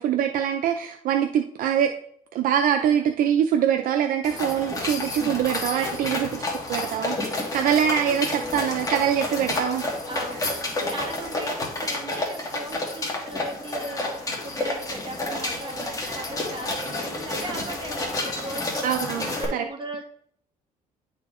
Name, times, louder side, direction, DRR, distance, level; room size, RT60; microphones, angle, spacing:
voice 1, 0.0-2.0 2.3-6.3 6.7-9.8 18.8-19.6, right 9 dB, 65° right, 4 dB, 0.5 m, -24 dB
sound 1, 4.2-19.4, left 2 dB, 20° left, 1.6 m, -30 dB
voice 2, 5.6-6.3 7.5-8.1 10.1-14.1 14.4-18.8 19.2-20.0, right 2 dB, 30° right, 2 dB, 1.4 m, -38 dB
10.5 x 4.1 x 3.1 m, 0.64 s
cardioid pair, 130°, 15 cm